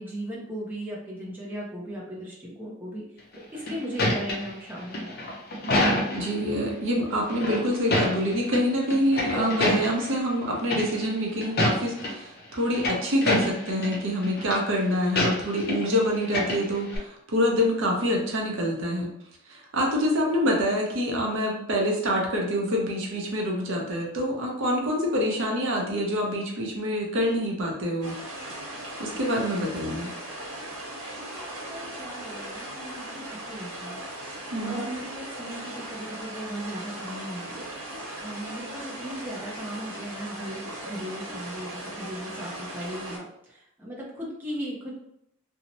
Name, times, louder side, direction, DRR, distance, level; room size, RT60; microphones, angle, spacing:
voice 1, 0.0-3.0 3.3-5.4 31.3-34.0 34.6-44.9, equal, 10° right, -5 dB, 0.5 m, -37 dB
sound 1, 3.3-6.4 7.3-8.6 8.9-10.1 10.7-11.1 11.4-12.1 12.5-14.0 14.2-14.6 15.2-15.9 16.2-17.0, left 1 dB, 45° left, 0.6 m, -27 dB
voice 2, 6.1-19.1 19.5-28.1 29.0-30.1 34.5-34.8, equal, 60° right, 0 dB, 0.6 m, -26 dB
sound 2, 28.0-43.2, right 1 dB, 90° right, 1.1 m, -38 dB
2.6 x 2.0 x 2.9 m, 0.76 s
head